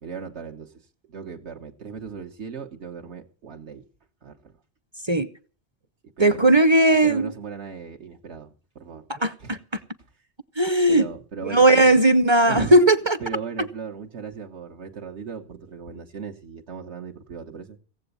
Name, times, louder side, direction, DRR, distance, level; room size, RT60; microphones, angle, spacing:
voice 1, 0.0-3.8 4.2-4.5 6.2-6.5 7.0-9.1 9.4-9.8 10.9-11.9 12.5-12.8 13.2-17.8, right 6 dB, 80° right, 1.5 m, -37 dB
voice 2, 6.2-7.3 9.1-9.6 10.6-11.1 11.5-13.2 13.6-13.7, right 1 dB, 30° right, 0.6 m, -17 dB
17.0 x 7.9 x 8.3 m
omnidirectional pair, 1.1 m